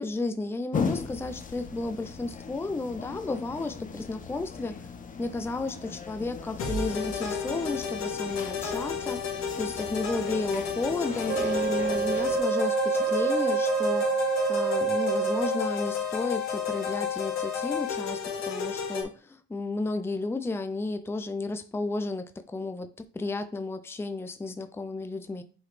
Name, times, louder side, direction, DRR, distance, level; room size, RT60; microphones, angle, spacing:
voice 1, 0.0-4.8 5.2-25.4, left 3 dB, 10° left, 0.5 m, -33 dB
sound 1, 0.7-12.4, left 5 dB, 40° left, 0.8 m, -38 dB
sound 2, 6.6-19.0, left 7 dB, 90° left, 2.1 m, -32 dB
Wind instrument woodwind instrument, 11.3-15.9, right 7 dB, 75° right, 0.7 m, -27 dB
7.6 x 3.9 x 3.3 m
cardioid pair, 90°, 21 cm